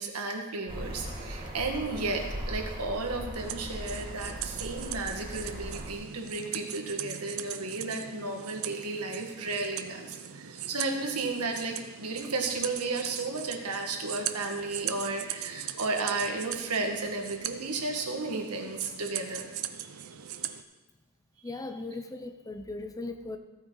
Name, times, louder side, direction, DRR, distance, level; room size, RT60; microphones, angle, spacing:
voice 1, 0.0-19.4 19.8-20.0, right 3 dB, 80° right, 2 dB, 1.7 m, -33 dB
sound 1, 0.7-5.9, equal, 25° right, 1.8 m, -39 dB
sound 2, 3.4-20.6, right 10 dB, 65° right, 0.6 m, -40 dB
voice 2, 21.4-23.4, left 2 dB, 15° left, 8 dB, 0.6 m, -38 dB
15.5 x 8.9 x 3.9 m, 1.2 s
head